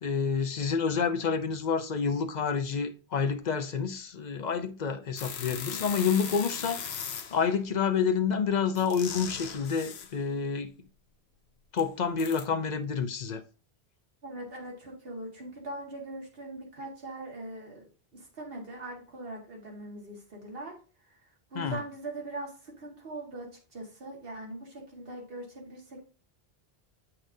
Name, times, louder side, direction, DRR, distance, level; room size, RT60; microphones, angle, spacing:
voice 1, 0.0-6.9 7.3-10.7 11.7-13.4 21.5-21.8, left 6 dB, 50° left, 0.7 m, -28 dB
sound 1, 5.2-7.5 8.7-10.2 11.8-11.9 12.2-12.5, left 7 dB, 80° left, 1.0 m, -39 dB
voice 2, 5.5-5.8 14.2-20.8 21.5-26.1, right 1 dB, 65° right, 1.9 m, -41 dB
7.7 x 5.7 x 2.7 m
omnidirectional pair, 1.1 m